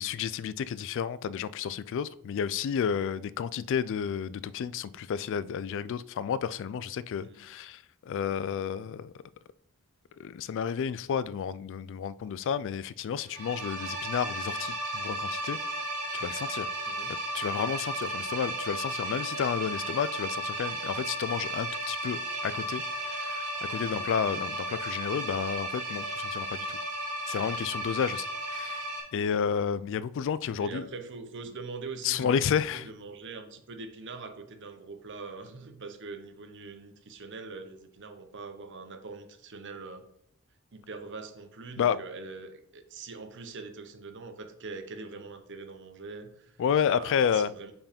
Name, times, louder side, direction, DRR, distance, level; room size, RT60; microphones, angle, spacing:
voice 1, 0.0-9.1 10.2-15.6 16.1-16.7 17.3-26.8 27.3-28.8 29.1-30.9 32.0-32.9 41.8-42.0 46.6-47.5, left 7 dB, 60° left, 0.3 m, -31 dB
sound 1, 13.3-29.0, right 1 dB, 80° right, 2.3 m, -34 dB
voice 2, 16.9-17.2 24.2-24.5 28.1-28.2 30.5-40.1 40.7-47.7, right 4 dB, 60° right, 0.9 m, -43 dB
5.6 x 4.6 x 5.2 m
head